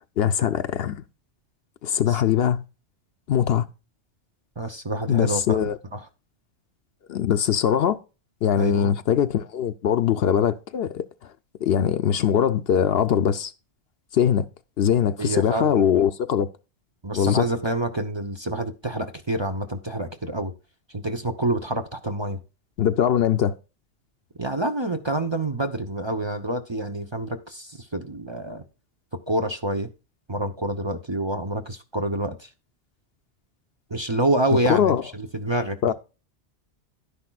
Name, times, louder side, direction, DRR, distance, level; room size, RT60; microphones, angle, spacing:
voice 1, 0.2-1.0 1.8-2.6 3.3-3.7 5.1-5.7 7.1-8.0 8.4-11.0 11.6-13.5 14.1-14.5 14.8-16.5 17.1-17.4 22.8-23.5 34.7-35.0 35.8-35.9, left 9 dB, 65° left, 0.8 m, -21 dB
voice 2, 4.6-6.1 8.6-8.9 15.2-16.1 17.0-20.5 20.9-22.4 24.4-28.6 29.3-29.9 30.3-32.5 33.9-35.9, right 2 dB, 25° right, 0.7 m, -27 dB
11.0 x 10.0 x 2.3 m
omnidirectional pair, 1.2 m